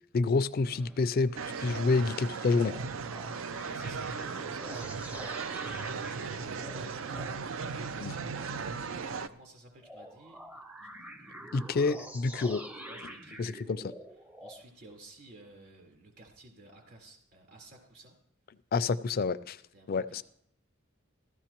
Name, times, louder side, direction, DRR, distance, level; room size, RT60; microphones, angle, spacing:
voice 1, 0.1-2.8 8.0-8.1 11.5-12.6 13.4-13.8 18.7-19.6 19.9-20.2, left 4 dB, 45° left, 0.4 m, -28 dB
sound 1, 0.7-2.3 2.6-7.4 9.8-14.7, right 1 dB, 10° right, 0.6 m, -47 dB
sound 2, 1.3-9.3, right 5 dB, 75° right, 0.5 m, -37 dB
voice 2, 3.5-4.9 5.2-7.3 7.9-11.4 12.9-13.8 14.1-18.1 19.7-20.2, right 2 dB, 50° right, 3.6 m, -55 dB
15.5 x 13.5 x 2.9 m
head